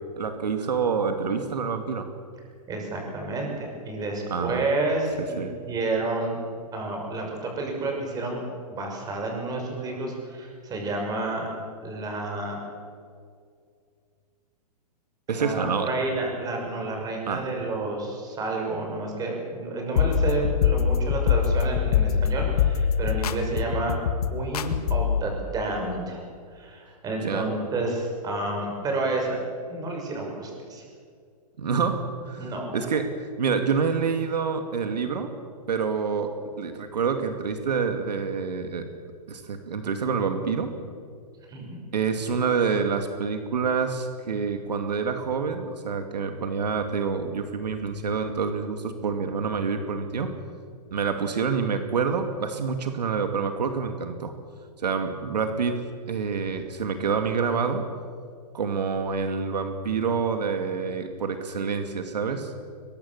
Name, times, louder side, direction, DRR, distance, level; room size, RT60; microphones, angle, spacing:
voice 1, 0.2-2.1 4.3-4.6 5.4-5.5 15.3-15.9 17.3-17.5 27.2-27.5 31.6-33.1 33.4-35.3 35.7-38.9 39.3-40.7 41.9-50.3 50.9-54.3 54.8-57.9 58.5-62.5, right 5 dB, 80° right, 7 dB, 2.5 m, -27 dB
voice 2, 2.7-6.4 6.7-8.4 8.7-11.5 11.8-12.6 15.3-24.0 24.3-26.2 26.5-29.4 29.7-30.8 32.3-32.8 41.5-41.8, right 2 dB, 20° right, 1 dB, 6.3 m, -30 dB
sound 1, 20.0-25.2, left 8 dB, 65° left, 1.9 m, -23 dB
22.5 x 21.5 x 7.3 m, 2.2 s
hypercardioid pair, 140°, 21 cm